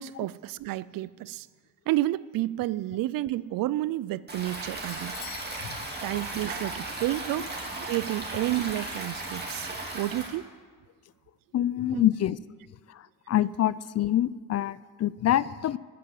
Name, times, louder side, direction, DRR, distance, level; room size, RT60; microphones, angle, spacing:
voice 1, 0.0-1.5 1.9-5.2 6.0-7.5 7.8-9.7 9.9-10.5 11.9-12.1, right 16 dB, 75° right, 0.5 m, -30 dB
Stream, 4.3-10.3, right 2 dB, 30° right, 3.1 m, -36 dB
Bell / Doorbell, 4.9-6.6, left 12 dB, 80° left, 0.9 m, -47 dB
voice 2, 11.5-12.4 12.9-15.8, left 12 dB, 50° left, 0.5 m, -26 dB
14.0 x 7.6 x 7.7 m
supercardioid pair, 65°, 34 cm